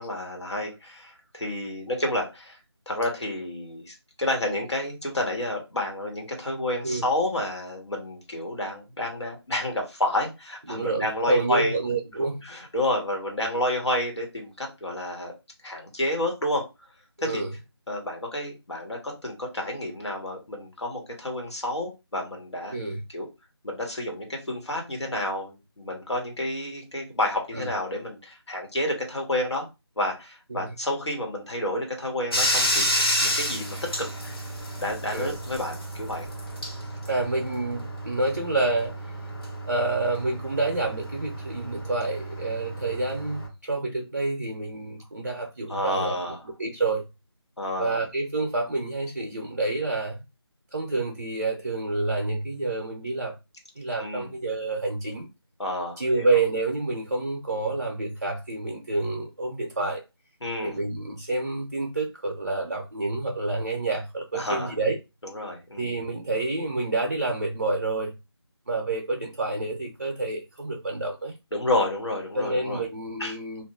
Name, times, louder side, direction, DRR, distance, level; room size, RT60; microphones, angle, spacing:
voice 1, 0.0-2.6 2.9-11.8 12.4-15.3 15.6-16.6 17.3-17.4 17.9-22.7 23.1-23.3 23.6-29.6 30.0-34.1 34.8-36.3 45.7-46.4 47.6-48.0 54.0-54.3 55.6-56.3 60.4-60.8 64.3-64.7 65.2-65.9 71.5-72.8 73.2-73.4, left 1 dB, 85° left, 1.2 m, -30 dB
voice 2, 10.7-12.4 17.2-17.5 22.7-23.0 27.5-27.7 30.5-30.7 35.1-35.4 37.1-39.1 39.7-46.2 46.6-47.0 47.8-50.2 50.7-53.3 53.8-55.3 56.0-60.0 60.6-65.0 65.8-68.2 68.7-71.3 72.3-73.6, right 2 dB, 40° right, 0.5 m, -28 dB
Bathtub (filling or washing), 32.3-43.5, equal, 60° left, 1.1 m, -30 dB
2.3 x 2.1 x 3.5 m
figure-of-eight pair, 170°, 14 cm